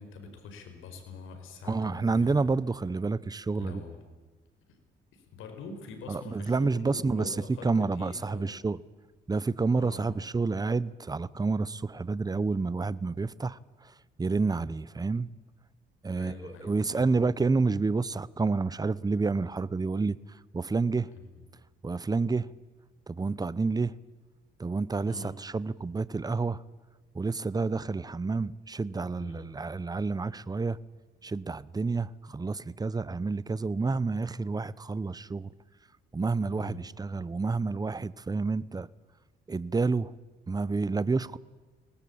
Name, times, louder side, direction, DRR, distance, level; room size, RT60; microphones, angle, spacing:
voice 1, 0.0-2.5 3.6-4.0 4.7-4.8 5.1-8.6 9.7-10.1 16.1-17.2 21.3-21.4 25.1-25.4 29.2-29.5 36.6-36.8, left 4 dB, 85° left, 4.9 m, -45 dB
voice 2, 1.6-3.8 6.1-8.8 9.3-15.3 16.0-21.1 21.8-22.5 23.1-24.0 24.6-26.6 27.1-30.8 31.2-35.5 36.1-38.9 39.5-40.1 40.5-41.4, right 4 dB, 20° right, 0.8 m, -29 dB
23.0 x 19.5 x 8.7 m
cardioid pair, 90°, 20 cm